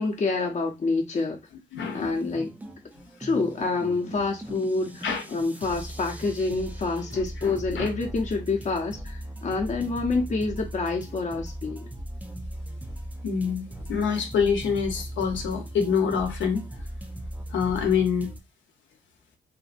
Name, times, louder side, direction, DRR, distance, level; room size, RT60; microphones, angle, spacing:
voice 1, 0.0-1.4 1.9-2.5 3.2-11.9, left 3 dB, 35° left, 0.7 m, -27 dB
voice 2, 1.7-2.4 5.0-5.2 7.4-7.9 13.2-16.6 17.5-18.3, left 6 dB, 70° left, 0.8 m, -26 dB
sound 1, 1.8-18.4, right 1 dB, 10° right, 0.4 m, -38 dB
2.6 x 2.4 x 2.5 m
cardioid pair, 90°, 20 cm